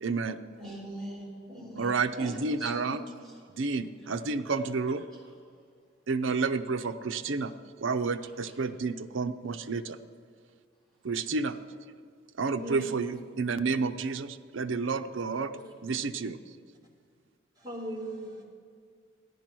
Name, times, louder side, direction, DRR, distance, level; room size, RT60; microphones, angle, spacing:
voice 1, 0.0-0.4 1.8-3.0 3.6-5.0 6.1-7.5 7.8-10.0 11.0-11.6 12.4-15.5 15.8-16.4, right 4 dB, 70° right, 9 dB, 0.6 m, -30 dB
voice 2, 0.6-3.0, equal, ahead, -6 dB, 3.5 m, -41 dB
voice 3, 12.6-12.9 15.5-15.7 17.6-18.4, equal, 20° right, -3 dB, 2.3 m, -38 dB
13.5 x 10.5 x 6.1 m, 2.1 s
head